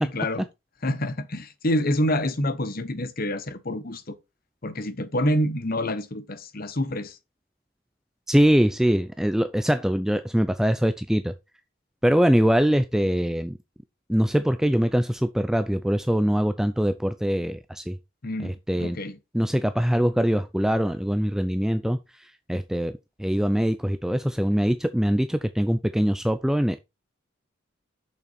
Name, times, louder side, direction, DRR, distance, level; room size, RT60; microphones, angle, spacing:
voice 1, 0.0-0.4 0.8-4.2 4.6-7.2 18.2-19.2, left 1 dB, 45° left, 0.9 m, -27 dB
voice 2, 8.3-11.3 12.0-13.6 14.1-18.0 18.4-19.0 19.3-26.8, equal, ahead, 0.3 m, -23 dB
6.7 x 5.8 x 4.2 m
head